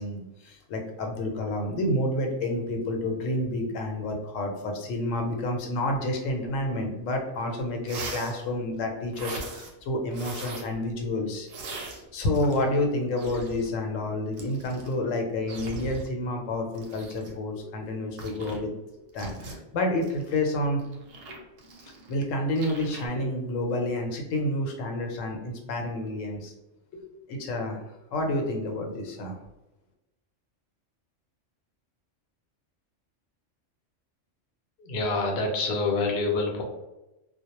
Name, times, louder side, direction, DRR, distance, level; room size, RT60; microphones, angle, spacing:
voice 1, 0.0-11.5 12.1-18.7 19.1-20.8 21.3-21.4 22.1-26.5 26.9-27.0 27.3-27.8 28.1-29.4, left 1 dB, 85° left, 2 dB, 0.9 m, -29 dB
sound 1, 7.3-7.4 7.8-8.4 9.1-9.7 10.1-10.7 11.5-12.8 13.1-13.7 14.3-14.9 15.5-16.1 16.7-17.3 18.2-18.6 19.2-19.5 20.0-22.2 22.5-23.1, right 3 dB, 90° right, 1.0 m, -40 dB
voice 2, 34.8-36.6, left 3 dB, 60° left, 1 dB, 0.7 m, -26 dB
2.1 x 2.0 x 2.8 m, 1.0 s
omnidirectional pair, 1.3 m